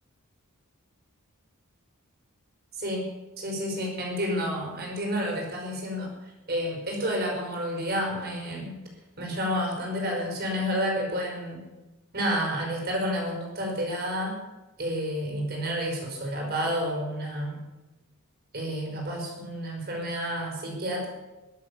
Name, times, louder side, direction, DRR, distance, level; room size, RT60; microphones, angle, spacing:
voice 1, 3.4-6.1 6.5-8.8 9.2-11.7 12.1-14.4 14.8-17.6 18.5-21.1, equal, 45° right, 0 dB, 5.2 m, -30 dB
22.0 x 8.0 x 7.1 m, 1.1 s
head